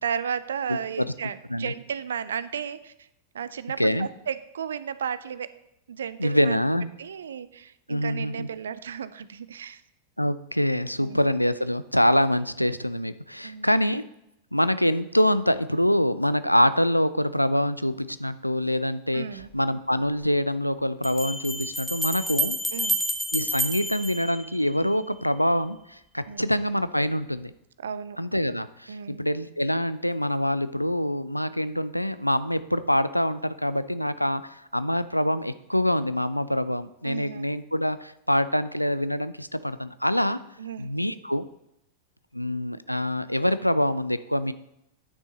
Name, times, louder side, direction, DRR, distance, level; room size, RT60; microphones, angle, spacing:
voice 1, 0.0-2.9 3.3-5.5 5.9-6.6 7.0-9.8 11.0-11.2 13.4-13.7 19.1-19.5 22.7-23.0 26.3-26.5 27.8-28.2 28.9-29.2 37.0-37.4 40.6-40.9, right 7 dB, 65° right, 16 dB, 0.4 m, -34 dB
voice 2, 0.7-1.1 1.5-1.7 3.8-4.1 6.2-6.9 7.9-8.5 10.2-14.0 14.5-22.6 23.3-27.5 28.2-40.4 40.8-41.5 42.3-44.5, equal, 90° left, 14 dB, 0.3 m, -25 dB
sound 1, 19.4-19.5 21.0-25.0, equal, ahead, 1.1 m, -29 dB
10.0 x 6.1 x 4.0 m, 0.81 s
figure-of-eight pair, 90°, 0 cm